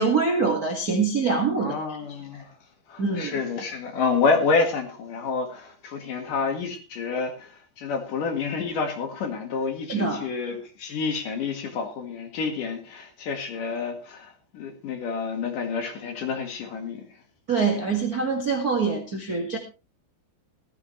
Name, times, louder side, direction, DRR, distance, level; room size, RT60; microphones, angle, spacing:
voice 1, 0.0-2.0 2.3-2.4 3.0-3.4 9.9-10.3 17.5-19.6, right 4 dB, 60° right, 0.9 m, -24 dB
voice 2, 1.6-2.4 2.9-17.0, left 4 dB, 55° left, 3.0 m, -28 dB
15.5 x 14.5 x 3.2 m
omnidirectional pair, 5.2 m